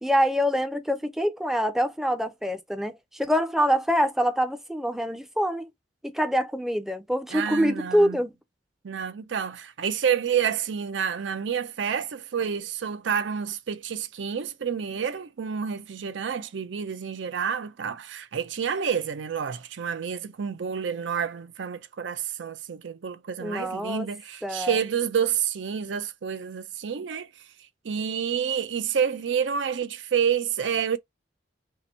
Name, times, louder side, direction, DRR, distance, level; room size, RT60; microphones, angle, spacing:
voice 1, 0.0-5.7 6.0-8.3 23.4-24.1 24.4-24.8, equal, ahead, 0.4 m, -25 dB
voice 2, 7.3-8.2 8.8-27.3 27.8-31.0, right 7 dB, 90° right, 0.5 m, -29 dB
2.8 x 2.5 x 4.1 m
head